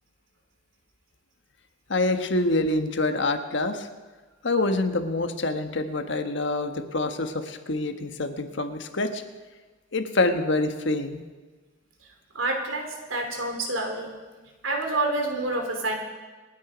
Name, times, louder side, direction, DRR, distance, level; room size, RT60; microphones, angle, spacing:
voice 1, 1.9-3.9 4.4-9.2 9.9-11.2, left 2 dB, 65° left, 7 dB, 1.3 m, -26 dB
voice 2, 12.3-14.1 14.6-15.9, right 2 dB, 90° right, 3 dB, 3.2 m, -28 dB
27.5 x 9.9 x 5.1 m, 1.3 s
head